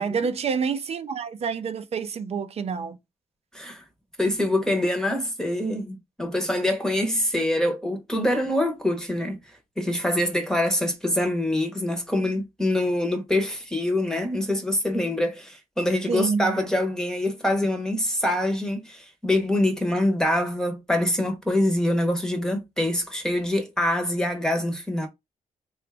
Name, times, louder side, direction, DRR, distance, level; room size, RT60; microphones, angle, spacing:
voice 1, 0.0-3.0 16.1-16.5, right 6 dB, 50° right, 0.5 m, -28 dB
voice 2, 3.5-3.8 4.2-9.4 9.8-25.1, left 1 dB, 5° left, 0.8 m, -25 dB
3.8 x 2.3 x 3.3 m
cardioid pair, 120°, 13 cm